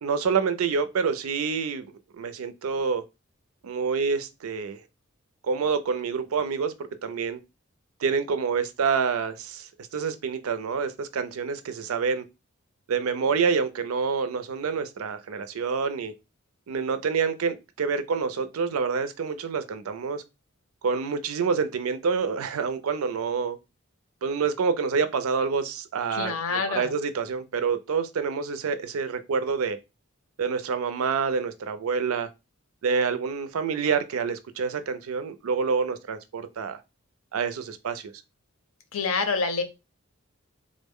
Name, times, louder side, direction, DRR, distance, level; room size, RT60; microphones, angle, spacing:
voice 1, 0.0-1.9 2.2-3.0 3.6-4.8 5.4-6.7 7.0-7.4 8.0-12.2 12.9-16.1 16.7-20.2 20.8-23.6 24.2-29.8 30.4-32.3 32.8-36.8 37.3-38.1, right 5 dB, 75° right, 0.4 m, -27 dB
voice 2, 26.1-26.9 38.9-39.6, left 4 dB, 75° left, 0.7 m, -27 dB
3.6 x 2.1 x 3.5 m
head